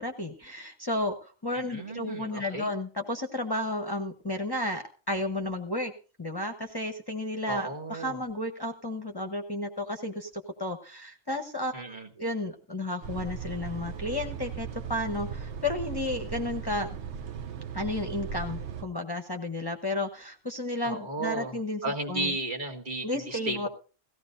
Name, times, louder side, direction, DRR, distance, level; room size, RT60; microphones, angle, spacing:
voice 1, 0.0-5.9 6.2-16.9 17.7-22.4 23.0-23.7, left 1 dB, 20° left, 3 dB, 1.0 m, -33 dB
voice 2, 1.5-2.7 7.5-8.2 11.7-12.1 20.8-21.6 21.8-23.7, right 2 dB, 45° right, 1 dB, 1.9 m, -34 dB
sound 1, 13.0-18.8, right 7 dB, 75° right, 1.1 m, -37 dB
17.5 x 15.0 x 2.6 m, 0.36 s
omnidirectional pair, 1.2 m